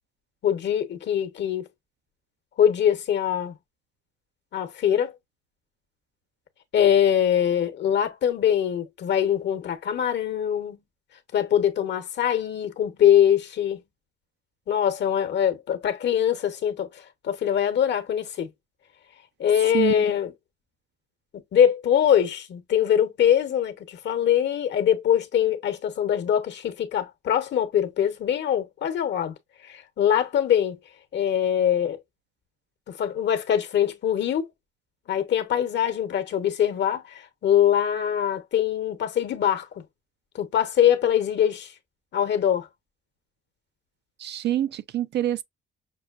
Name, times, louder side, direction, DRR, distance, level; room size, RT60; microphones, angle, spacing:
voice 1, 0.4-1.7 2.6-3.5 4.5-5.1 6.7-10.8 11.3-13.8 14.7-18.5 19.4-20.3 21.5-29.3 29.6-30.8 31.1-32.0 32.9-34.4 35.1-39.8 40.3-41.7 42.1-42.7, left 9 dB, 65° left, 0.9 m, -23 dB
voice 2, 44.2-45.4, right 12 dB, 60° right, 0.4 m, -26 dB
6.1 x 2.2 x 2.4 m
cardioid pair, 90°, 20 cm